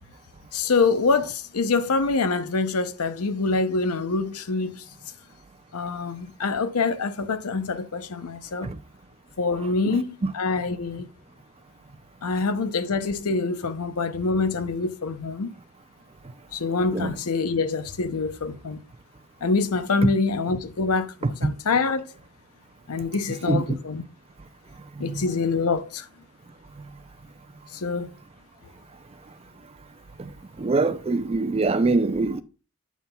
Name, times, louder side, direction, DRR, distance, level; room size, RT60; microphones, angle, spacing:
voice 1, 0.5-4.8 5.7-8.7 9.4-11.1 12.2-15.5 16.5-18.8 19.4-21.1 21.4-22.1 22.9-24.0 25.0-26.1 27.7-28.1, left 4 dB, 80° left, 0.7 m, -25 dB
voice 2, 9.8-10.3 16.9-17.1 21.2-21.3 23.5-23.8 25.0-25.2 30.2-30.3 30.6-32.4, right 3 dB, 25° right, 0.4 m, -24 dB
9.3 x 7.2 x 2.3 m
head